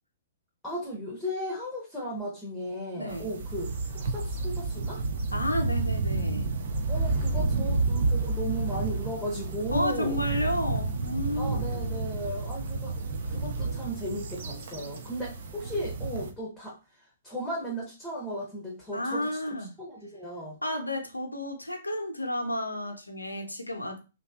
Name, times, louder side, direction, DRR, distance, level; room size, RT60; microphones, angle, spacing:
voice 1, 0.6-5.0 6.9-10.3 11.4-13.0 13.3-16.8 17.2-19.4 19.8-20.6, equal, 5° left, -3 dB, 0.8 m, -35 dB
voice 2, 3.0-3.3 5.3-6.5 9.7-11.6 18.9-19.7 20.6-24.0, left 1 dB, 80° left, 4 dB, 0.6 m, -31 dB
sound 1, 3.1-16.3, right 3 dB, 50° right, 0.4 m, -30 dB
2.6 x 2.3 x 2.3 m, 0.30 s
figure-of-eight pair, 115°, 0 cm